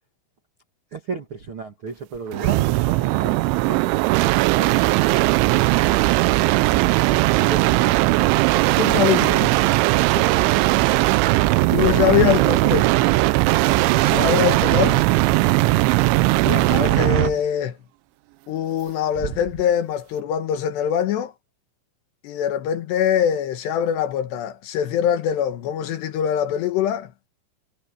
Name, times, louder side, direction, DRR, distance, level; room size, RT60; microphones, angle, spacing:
voice 1, 0.9-3.9 12.1-12.4, right 5 dB, 55° right, 1.4 m, -33 dB
sound 1, 2.3-17.4 19.2-19.6, right 20 dB, 80° right, 3.0 m, -18 dB
voice 2, 8.8-9.7 11.7-12.9 13.9-15.0 16.4-17.8 18.5-21.3 22.2-27.1, left 9 dB, 70° left, 3.2 m, -23 dB
omnidirectional pair, 5.5 m